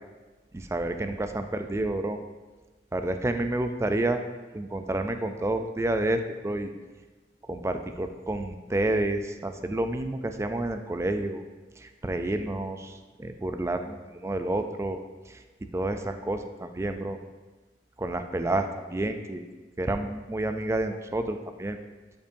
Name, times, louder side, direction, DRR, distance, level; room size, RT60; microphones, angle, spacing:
voice 1, 0.5-2.2 2.9-4.2 4.5-6.7 7.5-11.4 11.8-15.0 15.3-15.4 15.7-17.2 18.0-19.4 19.8-21.8, right 1 dB, 15° right, 7 dB, 0.3 m, -29 dB
11.0 x 5.3 x 2.6 m, 1.2 s
head